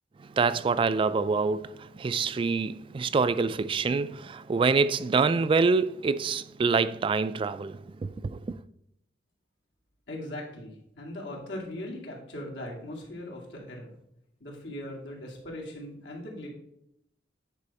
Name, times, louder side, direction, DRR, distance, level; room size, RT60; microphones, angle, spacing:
voice 1, 0.3-8.6, right 4 dB, 30° right, 0.3 m, -26 dB
voice 2, 10.1-13.9 14.4-16.5, left 1 dB, 90° left, 2.4 m, -39 dB
9.7 x 5.0 x 4.1 m
head